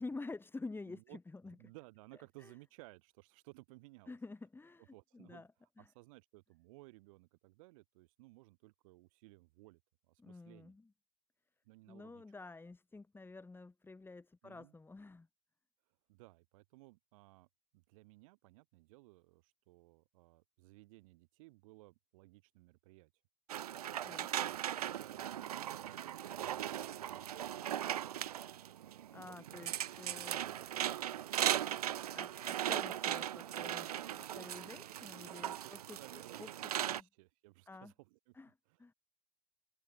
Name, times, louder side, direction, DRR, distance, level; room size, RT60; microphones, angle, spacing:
voice 1, 0.0-1.6 2.4-2.5 4.1-5.5 5.8-5.9 10.2-10.9 11.9-15.3 24.0-24.3 29.1-30.4 32.1-37.0 37.7-37.9 38.3-38.5 38.8-38.9, left 3 dB, 10° left, 3.7 m, -49 dB
voice 2, 0.9-1.2 1.6-4.2 4.9-5.5 5.9-9.8 10.1-10.8 11.6-12.2 14.4-14.7 16.1-17.5 17.7-23.1 24.3-27.5 29.1-29.5 29.7-31.3 34.5-35.0 35.5-38.3 38.7-38.9, right 22 dB, 60° right, 2.9 m, -59 dB
sound 1, 23.5-37.0, right 11 dB, 75° right, 0.6 m, -38 dB
hypercardioid pair, 90°, 20 cm